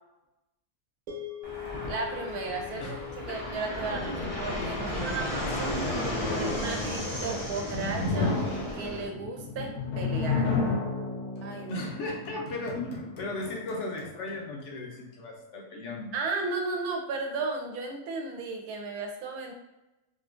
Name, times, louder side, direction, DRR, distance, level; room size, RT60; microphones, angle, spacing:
sound 1, 1.1-9.4, left 11 dB, 35° right, 0.9 m, -45 dB
Fixed-wing aircraft airplane, 1.4-9.1, left 1 dB, 45° left, 0.4 m, -34 dB
voice 1, 1.9-3.0 3.3-5.8 6.2-10.5 11.4-11.8 16.1-19.5, right 3 dB, 80° right, 3 dB, 1.1 m, -35 dB
voice 2, 5.8-6.8 11.6-16.1, left 2 dB, 65° left, 0 dB, 0.8 m, -36 dB
sound 2, 7.5-14.4, left 3 dB, 90° left, 1.3 m, -32 dB
3.6 x 2.5 x 2.4 m, 0.98 s
omnidirectional pair, 1.6 m